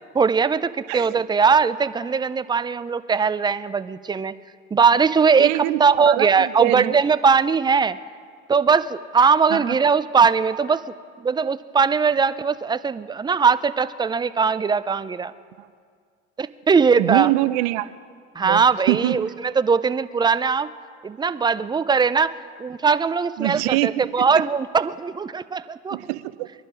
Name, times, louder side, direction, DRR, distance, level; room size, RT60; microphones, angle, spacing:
voice 1, 0.2-4.3 4.7-8.0 8.5-10.8 11.2-15.3 16.4-17.3 18.4-20.7 21.0-26.0, right 5 dB, 15° right, 15 dB, 0.4 m, -20 dB
voice 2, 0.9-1.2 5.4-7.0 9.5-9.8 17.0-17.9 18.4-19.3 23.4-24.4 25.9-26.5, right 18 dB, 70° right, 15 dB, 0.7 m, -24 dB
23.0 x 11.0 x 4.9 m, 2.1 s
supercardioid pair, 95°, 34 cm